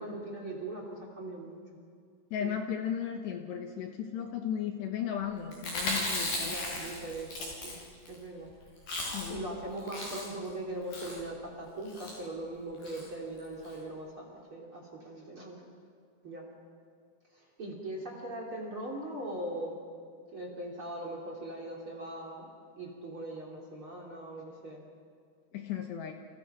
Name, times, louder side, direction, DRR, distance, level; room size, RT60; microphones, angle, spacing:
voice 1, 0.0-1.6 2.4-2.5 6.3-7.8 8.1-8.5 9.3-15.6 16.2-16.4 17.3-19.8 20.3-22.5 22.8-24.8, right 1 dB, 30° right, 0 dB, 3.2 m, -40 dB
voice 2, 2.3-6.6 9.1-9.4 25.5-26.1, left 9 dB, 70° left, 4 dB, 3.0 m, -35 dB
Chewing mastication, 5.5-8.2 8.5-8.6 8.8-9.5 9.8-10.5 10.9-11.2 11.9-12.2 12.8-13.0 13.4-13.5 13.7-13.8, left 1 dB, 45° left, 7.6 m, -36 dB
29.5 x 28.5 x 5.8 m, 2.1 s
omnidirectional pair, 5.9 m